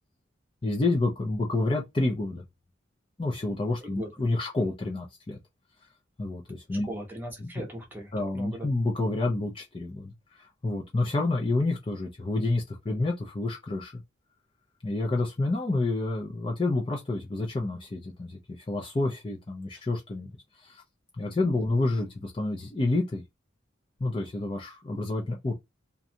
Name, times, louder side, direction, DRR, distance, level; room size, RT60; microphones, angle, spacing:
voice 1, 0.6-2.4 3.2-5.4 6.2-6.9 8.1-14.0 14.8-20.3 20.6-20.8 21.2-23.2 24.0-25.5, left 2 dB, 25° left, 0.5 m, -29 dB
voice 2, 3.8-4.1 6.8-8.7 21.4-21.6, right 1 dB, 10° right, 0.7 m, -39 dB
2.6 x 2.2 x 2.7 m
head